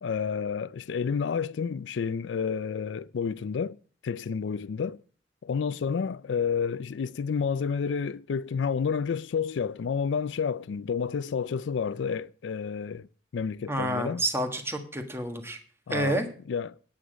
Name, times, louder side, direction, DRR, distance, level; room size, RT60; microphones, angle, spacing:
voice 1, 0.0-3.8 4.0-5.0 5.4-13.1 13.3-14.2 15.9-16.2 16.5-16.8, left 6 dB, 80° left, 0.4 m, -30 dB
voice 2, 13.7-15.6 15.9-16.3, right 1 dB, 15° right, 1.4 m, -29 dB
9.6 x 8.5 x 5.0 m
head